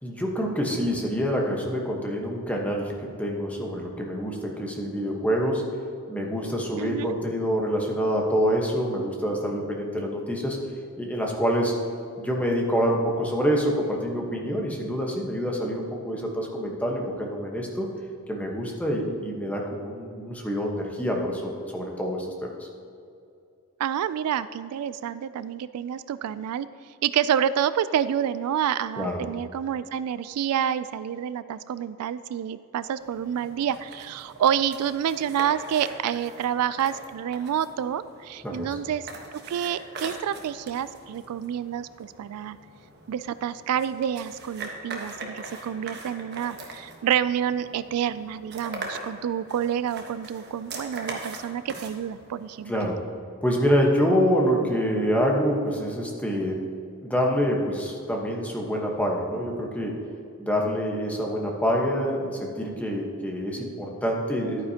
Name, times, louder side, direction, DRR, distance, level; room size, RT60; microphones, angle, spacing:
voice 1, 0.0-5.7 6.1-10.6 11.0-11.7 12.2-17.9 18.3-22.7 29.0-29.2 38.4-38.8 52.7-53.1 53.4-56.7 57.0-60.0 60.4-64.7, equal, 5° left, -1 dB, 1.1 m, -26 dB
voice 2, 6.8-7.1 23.8-26.7 27.0-42.6 43.1-52.7, right 9 dB, 80° right, 16 dB, 0.3 m, -28 dB
sound 1, 33.0-52.9, right 2 dB, 50° right, 1.2 m, -42 dB
11.0 x 9.3 x 2.8 m, 2.5 s
head